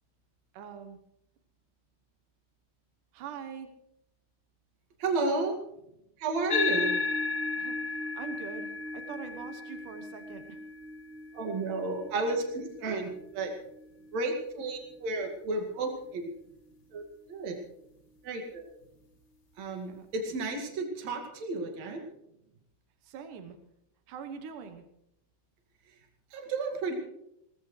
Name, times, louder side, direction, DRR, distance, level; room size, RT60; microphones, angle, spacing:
voice 1, 0.5-1.0 3.1-3.7 7.6-10.6 19.9-20.1 23.0-23.6 24.1-24.8, right 7 dB, 85° right, 8 dB, 2.7 m, -43 dB
voice 2, 5.0-5.6 6.2-6.9 11.3-13.5 14.1-16.3 16.9-17.6 18.2-18.6 19.6-22.1 26.3-27.0, right 3 dB, 60° right, 2 dB, 3.3 m, -32 dB
sound 1, 6.5-15.2, left 4 dB, 40° left, 1.0 m, -35 dB
22.5 x 18.5 x 3.2 m, 0.81 s
omnidirectional pair, 3.6 m